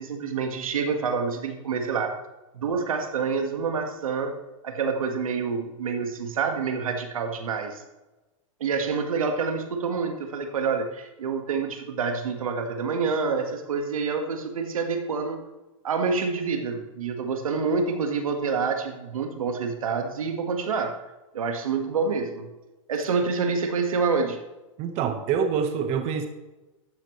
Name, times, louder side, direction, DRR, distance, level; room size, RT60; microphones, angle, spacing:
voice 1, 0.0-2.2 2.5-4.4 4.6-7.8 8.6-15.4 15.8-21.0 21.3-22.5 22.9-24.4, right 5 dB, 90° right, 5 dB, 1.7 m, -27 dB
voice 2, 24.8-26.3, right 7 dB, 40° right, 6 dB, 1.3 m, -26 dB
14.0 x 10.5 x 3.2 m, 1.1 s
hypercardioid pair, 130°, 17 cm